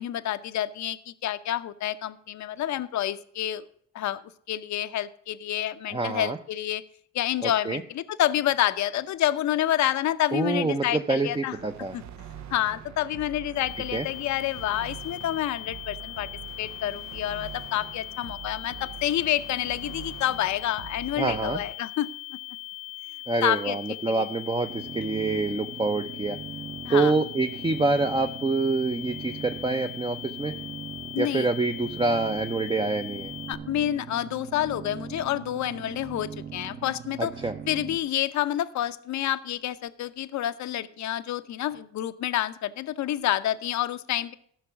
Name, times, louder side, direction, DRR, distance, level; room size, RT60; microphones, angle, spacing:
voice 1, 0.0-3.6 3.9-4.2 4.5-6.8 7.1-11.6 11.9-12.0 12.5-16.3 16.6-22.4 23.4-23.8 26.8-27.1 31.1-31.5 33.5-37.3 37.7-44.3, left 12 dB, 65° left, 12 dB, 0.7 m, -28 dB
voice 2, 5.9-6.4 7.4-7.8 10.3-12.0 13.9-14.1 21.2-21.6 23.3-26.4 26.9-30.5 31.2-33.3 37.2-37.6, right 3 dB, 15° right, 6 dB, 0.6 m, -26 dB
sound 1, 11.5-21.7, right 9 dB, 65° right, 0.8 m, -44 dB
sound 2, 13.6-33.6, left 19 dB, 30° left, 0.8 m, -40 dB
sound 3, 24.7-38.0, right 7 dB, 35° right, 1.0 m, -40 dB
13.5 x 5.9 x 5.9 m, 0.64 s
cardioid pair, 90°, 30 cm